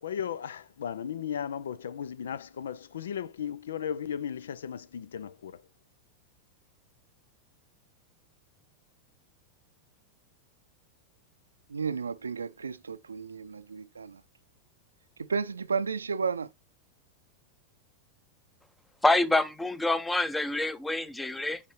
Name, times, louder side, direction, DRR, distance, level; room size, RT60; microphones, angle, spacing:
voice 1, 0.0-5.6, left 8 dB, 65° left, 0.4 m, -36 dB
voice 2, 11.7-14.2 15.2-16.5, right 5 dB, 75° right, 0.5 m, -32 dB
voice 3, 19.0-21.6, left 2 dB, 5° left, 0.7 m, -26 dB
8.1 x 5.7 x 3.1 m
figure-of-eight pair, 90°, 0 cm